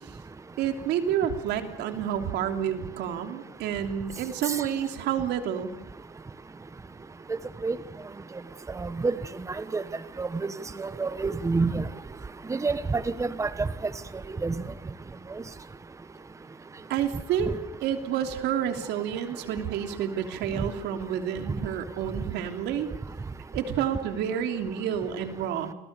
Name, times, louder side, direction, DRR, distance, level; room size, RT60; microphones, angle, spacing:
voice 1, 0.6-5.7 16.9-22.9 23.5-25.7, right 9 dB, 85° right, 6 dB, 3.2 m, -29 dB
voice 2, 8.8-9.1 9.7-9.8 10.2-10.3 10.8-11.8 12.5-13.7 14.4-14.5, right 4 dB, 20° right, 13 dB, 1.2 m, -27 dB
29.0 x 22.0 x 6.9 m, 0.84 s
cardioid pair, 110°, 17 cm